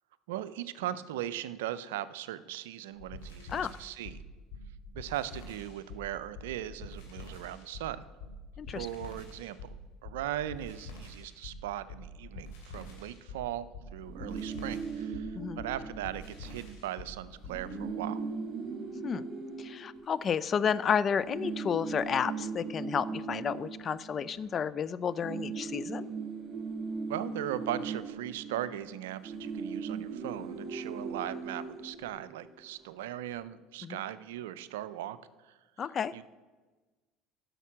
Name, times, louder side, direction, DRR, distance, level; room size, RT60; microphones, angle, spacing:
voice 1, 0.3-4.2 4.9-8.1 8.7-9.7 10.0-18.2 27.1-35.2 35.5-35.6 36.1-36.2, right 12 dB, 75° right, 15 dB, 0.4 m, -38 dB
sound 1, 3.0-17.7, left 1 dB, 75° left, 2.6 m, -46 dB
sound 2, 14.0-16.6 16.9-17.0 17.3-20.7 21.2-24.8 25.0-32.7, right 5 dB, 40° right, 2.6 m, -39 dB
voice 2, 19.6-26.1 33.8-34.0 35.8-36.1, left 7 dB, 40° left, 16 dB, 0.4 m, -31 dB
11.0 x 6.5 x 6.1 m, 1.3 s
hypercardioid pair, 70°, 0 cm